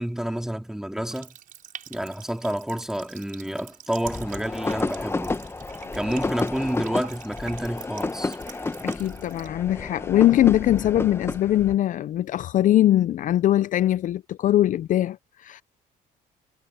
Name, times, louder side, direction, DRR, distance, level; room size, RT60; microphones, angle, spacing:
voice 1, 0.0-1.3 1.9-5.4 5.9-8.4, equal, 5° right, 2.2 m, -29 dB
Water tap faucet, 1.1-9.5, right 9 dB, 55° right, 5.1 m, -46 dB
sound 1, 4.0-11.7, left 3 dB, 15° left, 1.1 m, -31 dB
voice 2, 8.5-15.6, left 13 dB, 50° left, 0.4 m, -22 dB
cardioid pair, 110°, 17 cm